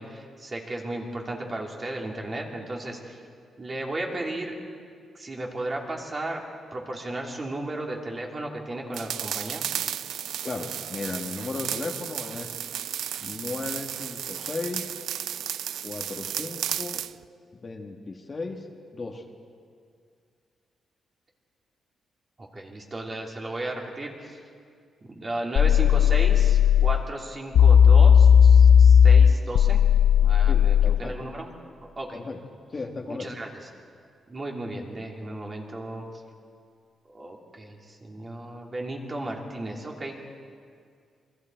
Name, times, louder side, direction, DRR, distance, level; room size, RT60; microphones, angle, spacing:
voice 1, 0.0-3.2 3.6-4.5 5.1-6.4 6.7-9.6 22.4-24.4 25.1-29.8 30.2-31.5 31.8-32.2 33.1-33.5 34.3-36.0 37.1-40.1, right 1 dB, 25° right, -1 dB, 2.8 m, -34 dB
sound 1, 8.9-17.1, right 10 dB, 90° right, 0.4 m, -33 dB
voice 2, 10.4-12.6 13.2-14.9 15.8-17.0 17.6-18.7 18.9-19.3 30.5-31.2 32.1-32.4 32.7-33.3, left 3 dB, 30° left, 2 dB, 1.5 m, -35 dB
sound 2, 25.6-27.0 27.5-31.0, left 8 dB, 85° left, 0.4 m, -15 dB
28.0 x 23.5 x 4.5 m, 2.2 s
wide cardioid pair, 145°, 0 cm